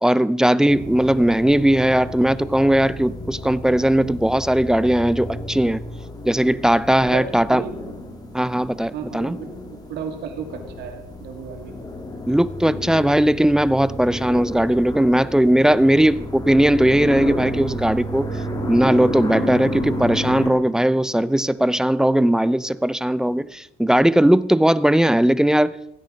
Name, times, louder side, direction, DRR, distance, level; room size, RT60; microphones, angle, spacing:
voice 1, 0.0-5.8 6.3-7.6 8.3-9.4 12.3-18.3 18.7-25.8, right 1 dB, 5° right, 0.4 m, -18 dB
sound 1, 0.7-20.5, left 1 dB, 20° left, 2.4 m, -31 dB
voice 2, 7.0-7.7 8.9-11.9, right 7 dB, 80° right, 2.3 m, -34 dB
16.0 x 9.5 x 5.1 m
cardioid pair, 110°, 17 cm